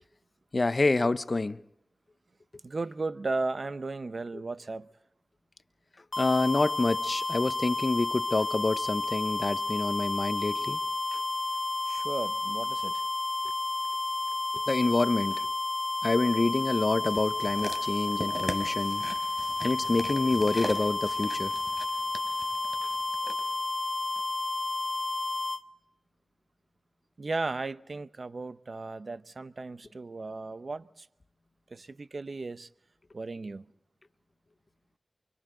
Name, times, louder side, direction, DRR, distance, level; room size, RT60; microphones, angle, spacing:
voice 1, 0.5-1.6 6.2-10.8 14.7-15.5 16.0-19.0 19.6-21.5, left 3 dB, 50° left, 0.9 m, -27 dB
voice 2, 2.6-4.9 11.9-13.0 27.2-31.1 31.7-32.7 33.1-33.6, right 3 dB, 65° right, 0.7 m, -35 dB
sound 1, 6.1-25.6, left 3 dB, 30° left, 1.3 m, -31 dB
sound 2, 17.1-23.4 24.2-24.3, right 1 dB, 30° right, 3.6 m, -41 dB
29.0 x 25.0 x 3.9 m
cardioid pair, 45°, 0 cm